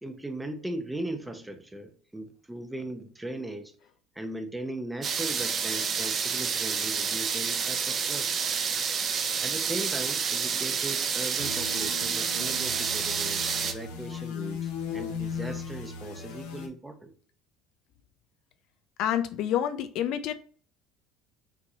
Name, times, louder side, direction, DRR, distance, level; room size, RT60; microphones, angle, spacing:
voice 1, 0.0-3.7 4.1-8.4 9.4-17.1, right 1 dB, 10° right, 0.8 m, -38 dB
sound 1, 5.0-13.7, right 6 dB, 40° right, 0.6 m, -29 dB
sound 2, 11.4-16.7, left 5 dB, 90° left, 1.0 m, -37 dB
voice 2, 19.0-20.3, left 10 dB, 65° left, 0.4 m, -28 dB
6.0 x 2.9 x 2.7 m
supercardioid pair, 100°, 0 cm